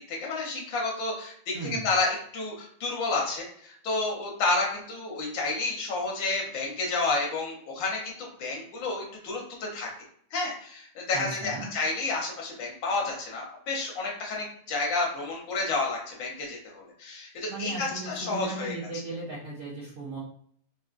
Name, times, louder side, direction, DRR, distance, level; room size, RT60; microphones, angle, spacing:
voice 1, 0.1-9.9 10.3-18.7, left 3 dB, 65° left, -1 dB, 1.5 m, -30 dB
voice 2, 1.5-1.9 11.1-11.7 17.5-20.2, right 2 dB, 60° right, -5 dB, 0.8 m, -36 dB
4.1 x 2.2 x 2.4 m, 0.62 s
omnidirectional pair, 2.4 m